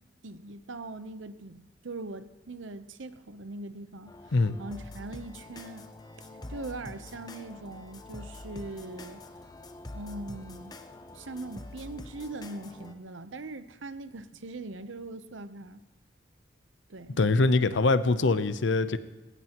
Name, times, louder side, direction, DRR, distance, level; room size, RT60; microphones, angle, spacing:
voice 1, 0.2-4.3 4.6-5.9 6.2-9.2 9.9-10.7 11.1-15.8 16.9-17.2, right 2 dB, 85° right, 12 dB, 0.8 m, -41 dB
sound 1, 4.1-12.9, left 2 dB, 20° left, 0.7 m, -45 dB
voice 2, 17.2-19.0, left 3 dB, 75° left, 13 dB, 0.7 m, -23 dB
18.5 x 16.5 x 3.0 m, 1.2 s
head